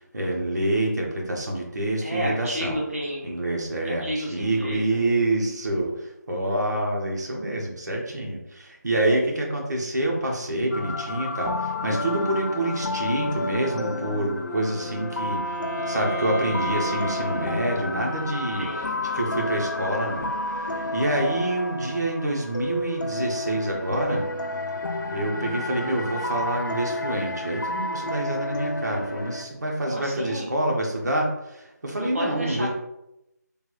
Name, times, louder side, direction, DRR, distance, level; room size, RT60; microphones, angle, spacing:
voice 1, 0.0-2.8 3.2-15.5 15.9-18.7 19.1-24.2 25.1-32.7, right 1 dB, 70° right, -1 dB, 1.1 m, -27 dB
voice 2, 2.0-3.5 3.8-5.1 18.5-18.9 29.8-30.5 32.0-32.7, equal, 50° right, -3 dB, 1.0 m, -32 dB
sound 1, 10.7-29.4, left 2 dB, 85° left, 0.5 m, -31 dB
Wind instrument woodwind instrument, 14.4-18.6, equal, 65° left, 0.9 m, -34 dB
3.6 x 2.4 x 3.1 m, 0.87 s
figure-of-eight pair, 165°, 10 cm